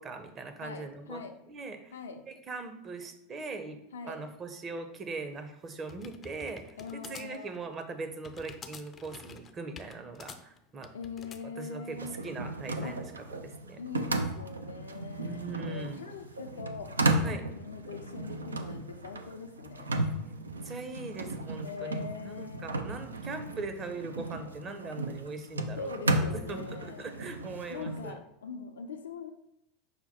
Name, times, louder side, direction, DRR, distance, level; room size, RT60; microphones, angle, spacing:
voice 1, 0.0-2.0 2.3-3.8 4.0-10.9 11.6-13.0 13.3-13.8 15.2-16.0 17.2-17.4 20.0-20.4 20.6-28.2, right 3 dB, 30° right, 7 dB, 0.7 m, -41 dB
voice 2, 0.6-1.4 1.9-2.2 3.9-4.2 6.8-7.5 10.9-12.2 12.8-13.0 13.8-19.9 21.6-22.8 25.8-27.1 27.7-29.3, left 5 dB, 80° left, 6 dB, 0.5 m, -42 dB
sound 1, 5.3-11.4, left 5 dB, 30° left, 0.4 m, -48 dB
sound 2, 11.9-28.1, right 2 dB, 90° right, 0.4 m, -35 dB
5.7 x 2.2 x 4.2 m, 0.81 s
hypercardioid pair, 90°, 0 cm